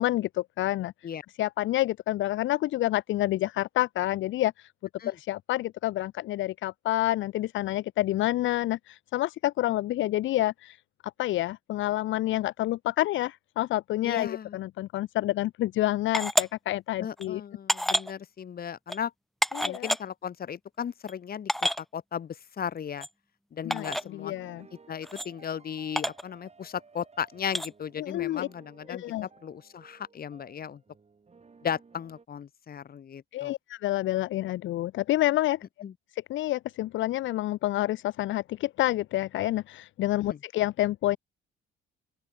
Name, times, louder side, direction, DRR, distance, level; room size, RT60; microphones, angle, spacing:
voice 1, 0.0-0.9 1.4-4.7 5.1-10.8 11.2-17.4 19.5-19.9 23.6-24.7 28.0-28.5 28.9-29.3 33.3-35.7 36.1-41.2, left 15 dB, 75° left, 0.6 m, -28 dB
voice 2, 14.0-14.6 17.0-19.1 19.6-21.5 21.9-23.1 23.5-24.3 24.9-30.8 31.6-33.5 35.8-35.9 40.3-40.4, left 8 dB, 50° left, 1.6 m, -36 dB
sound 1, 16.1-16.5 17.2-17.3 17.7-18.1 18.9-19.0 19.4-20.0 20.8-20.9 21.1-21.2 21.5-21.8 23.0-23.1 23.7-24.0 25.0-25.3 26.0-26.2 27.5-27.7, equal, ahead, 0.3 m, -28 dB
sound 2, 23.6-32.3, right 4 dB, 35° right, 6.8 m, -56 dB
open air
cardioid pair, 90°, 20 cm